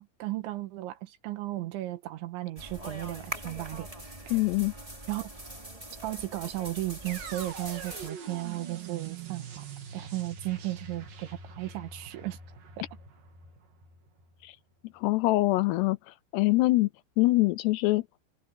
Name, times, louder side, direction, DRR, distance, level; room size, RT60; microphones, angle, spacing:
voice 1, 0.0-3.9 5.1-5.3 6.0-9.7 9.9-11.3 11.6-12.4, right 16 dB, 90° right, 3.8 m, -35 dB
sound 1, 2.6-8.1, right 1 dB, 10° right, 2.6 m, -42 dB
voice 2, 4.3-4.7 14.4-14.6 14.9-16.9 17.2-18.0, left 20 dB, 80° left, 2.6 m, -24 dB
sound 2, 7.1-15.0, right 6 dB, 50° right, 4.3 m, -44 dB
omnidirectional pair, 5.2 m